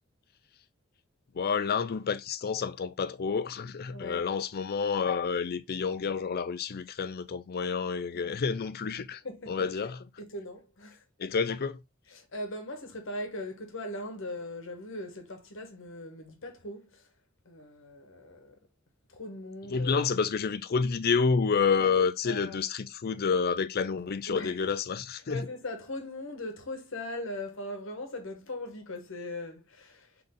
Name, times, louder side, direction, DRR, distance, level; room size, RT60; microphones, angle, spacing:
voice 1, 1.3-9.2 9.5-10.0 11.2-11.8 19.7-25.5, left 5 dB, 50° left, 0.4 m, -29 dB
voice 2, 3.9-4.2 8.1-8.3 9.2-9.7 10.2-11.0 12.1-17.1 17.4-18.6 19.1-20.1 21.8-21.9 22.2-22.6 24.3-24.6 25.3-30.1, left 1 dB, 65° left, 1.2 m, -40 dB
3.9 x 3.4 x 3.6 m
head